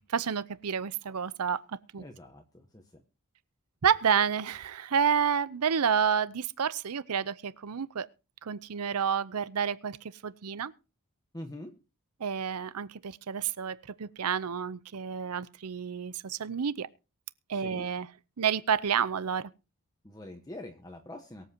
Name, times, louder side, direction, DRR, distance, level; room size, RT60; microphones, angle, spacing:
voice 1, 0.1-2.1 3.8-8.1 8.4-10.0 10.2-10.7 12.2-16.9 17.5-18.1 18.4-19.5, right 7 dB, 80° right, 0.6 m, -29 dB
voice 2, 2.0-3.0 11.3-11.8 17.5-17.9 20.0-21.5, left 1 dB, 15° left, 1.1 m, -44 dB
23.5 x 8.0 x 2.8 m
head